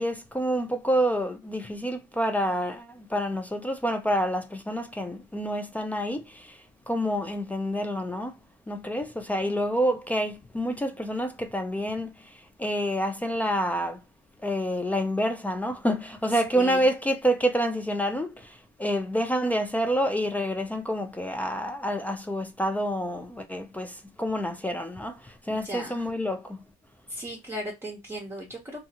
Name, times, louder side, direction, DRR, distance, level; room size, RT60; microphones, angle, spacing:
voice 1, 0.0-6.5 6.9-8.3 8.7-12.1 12.6-14.0 14.4-18.5 18.8-26.6, equal, 10° left, 0.4 m, -28 dB
voice 2, 16.3-16.9 25.5-26.1 27.1-28.9, right 1 dB, 15° right, 0.7 m, -37 dB
2.7 x 2.4 x 2.7 m
cardioid pair, 110°, 17 cm